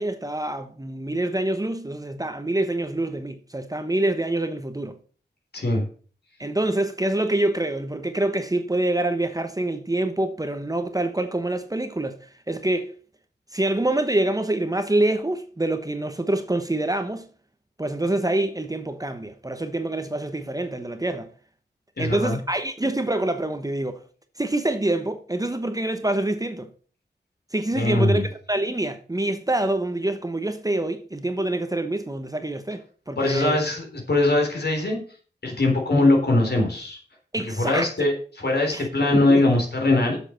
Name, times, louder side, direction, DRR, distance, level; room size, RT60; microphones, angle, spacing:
voice 1, 0.0-5.0 6.4-12.2 12.5-12.9 13.5-17.3 17.8-21.3 22.0-24.0 24.4-26.7 27.5-28.2 28.5-33.6 37.3-37.9 38.7-39.4, right 1 dB, 20° right, 1.0 m, -26 dB
voice 2, 5.5-5.8 22.0-22.4 27.7-28.3 33.2-35.0 35.4-37.0 37.6-40.2, left 2 dB, 65° left, 3.7 m, -21 dB
7.7 x 6.6 x 6.6 m
wide cardioid pair, 75°, 18 cm